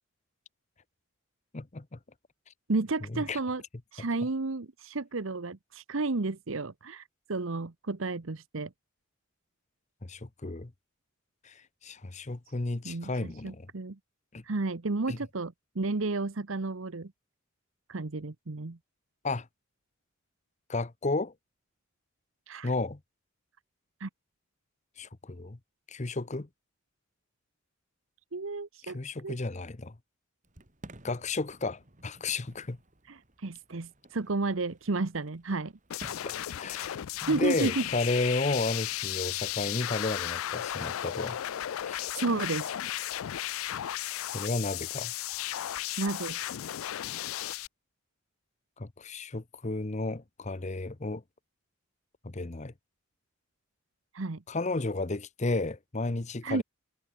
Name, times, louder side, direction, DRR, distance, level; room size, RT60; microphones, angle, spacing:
voice 1, 1.5-2.0 3.1-3.4 10.0-10.7 11.4-13.7 14.3-14.4 15.1-15.2 19.2-19.5 20.7-21.3 22.6-23.0 25.0-25.6 25.9-26.5 28.8-30.0 31.0-32.8 36.2-41.4 41.8-42.1 44.3-45.1 48.8-51.2 52.2-52.7 54.5-56.6, left 3 dB, 35° left, 0.9 m, -33 dB
voice 2, 2.7-3.6 3.9-8.7 12.8-14.0 14.4-17.1 17.9-18.8 22.5-22.7 24.0-24.1 28.3-29.0 29.2-29.4 33.1-35.7 37.3-37.8 42.2-42.7 46.0-46.6 54.1-54.4 56.4-56.6, right 3 dB, 75° right, 1.0 m, -32 dB
Fireworks, 30.4-40.3, right 1 dB, 40° right, 2.7 m, -55 dB
sound 1, 35.9-47.7, left 12 dB, 90° left, 0.4 m, -35 dB
head